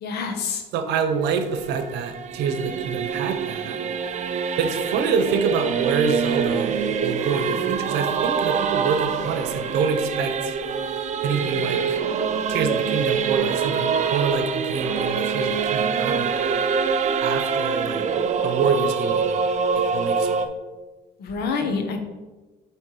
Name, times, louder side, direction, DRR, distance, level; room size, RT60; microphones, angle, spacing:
voice 1, 0.0-0.6 21.2-22.0, left 5 dB, 70° left, 5 dB, 1.1 m, -27 dB
voice 2, 0.7-3.8 4.6-10.5 11.2-12.0 12.5-16.4 17.2-18.0 18.4-19.3 19.7-20.4, right 5 dB, 80° right, 7 dB, 0.8 m, -26 dB
Singing / Musical instrument, 1.1-20.5, right 6 dB, 45° right, 0.5 m, -25 dB
7.4 x 3.4 x 4.8 m, 1.2 s
cardioid pair, 110°, 17 cm